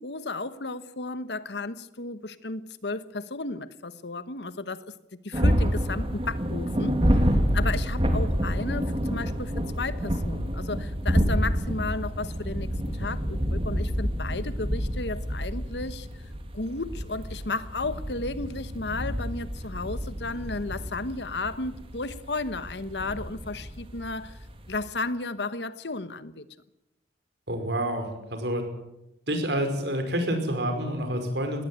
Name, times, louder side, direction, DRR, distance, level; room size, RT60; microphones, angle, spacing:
voice 1, 0.0-4.9 5.2-7.3 7.5-16.1 16.5-24.4 24.7-26.4, left 3 dB, 75° left, 1.2 m, -34 dB
sound 1, 5.3-24.9, equal, 30° right, 2.6 m, -28 dB
voice 2, 27.5-28.6 29.3-31.6, right 1 dB, 75° right, 5.3 m, -28 dB
20.5 x 17.5 x 8.9 m
head